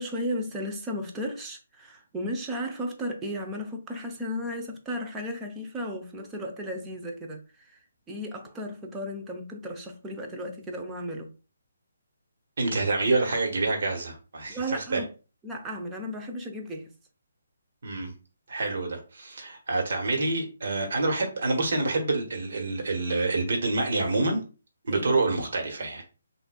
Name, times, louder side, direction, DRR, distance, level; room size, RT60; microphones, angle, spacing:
voice 1, 0.0-7.8 8.1-11.3 14.5-15.1 15.4-16.9 24.9-25.1, equal, 15° right, 0.7 m, -34 dB
voice 2, 12.6-14.6 14.9-15.0 17.8-18.1 18.5-24.4 24.8-26.0, right 3 dB, 60° right, 1.4 m, -27 dB
5.8 x 2.6 x 2.3 m
figure-of-eight pair, 145°, 0 cm